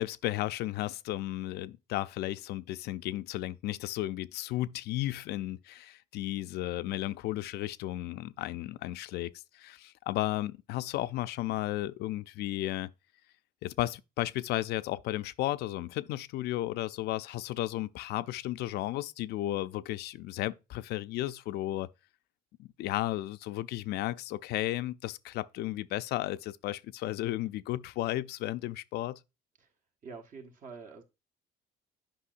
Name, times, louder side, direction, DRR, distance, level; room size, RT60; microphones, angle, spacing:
voice 1, 0.0-12.9 13.6-21.9 22.6-29.2, left 15 dB, 75° left, 0.4 m, -34 dB
voice 2, 30.0-31.0, right 5 dB, 55° right, 1.4 m, -46 dB
8.5 x 5.4 x 2.5 m
cardioid pair, 110°, 17 cm